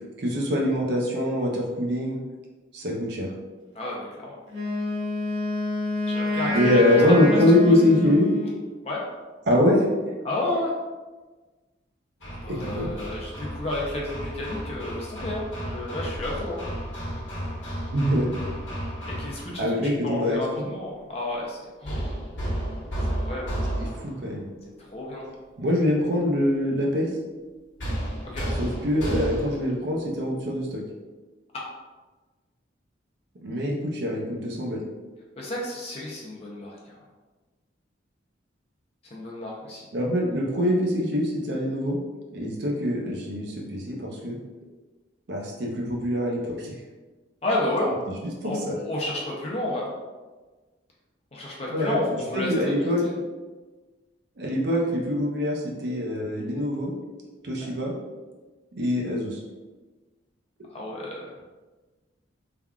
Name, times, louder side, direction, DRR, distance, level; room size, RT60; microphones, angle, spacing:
voice 1, 0.2-2.2 2.7-3.3 6.5-8.3 9.5-9.8 12.5-12.9 17.9-18.3 19.6-20.7 24.0-24.5 25.6-27.1 28.6-30.8 33.4-34.8 39.9-42.0 42.3-44.4 45.3-46.7 48.4-48.7 51.7-52.0 52.3-53.0 54.4-56.9 57.4-57.9 58.8-59.4, left 1 dB, 55° right, -1 dB, 0.5 m, -24 dB
voice 2, 3.7-4.4 6.1-6.8 7.3-7.4 7.7-7.8 8.8-9.0 10.2-10.7 12.4-16.6 19.2-19.6 20.0-22.2 23.1-23.6 24.8-25.3 28.3-28.5 31.5-31.6 35.4-37.0 39.1-39.9 47.4-47.9 48.4-49.9 51.3-53.1 57.6-57.7 60.7-61.3, left 1 dB, 30° left, -4 dB, 0.5 m, -31 dB
Wind instrument woodwind instrument, 4.5-8.6, left 2 dB, 80° right, 1.0 m, -28 dB
Hammer, 12.2-19.6 21.8-24.3 27.8-29.7, equal, 70° left, 1.1 m, -32 dB
3.4 x 2.3 x 2.3 m, 1.3 s
head